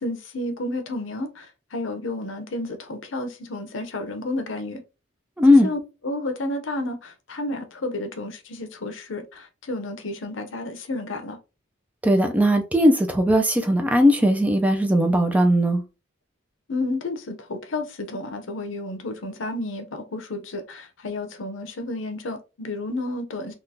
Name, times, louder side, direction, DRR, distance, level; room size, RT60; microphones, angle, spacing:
voice 1, 0.0-4.8 5.6-11.4 16.7-23.5, left 2 dB, 80° left, 0.7 m, -31 dB
voice 2, 5.4-5.7 12.0-15.8, equal, 10° right, 0.4 m, -18 dB
3.7 x 2.4 x 2.7 m
head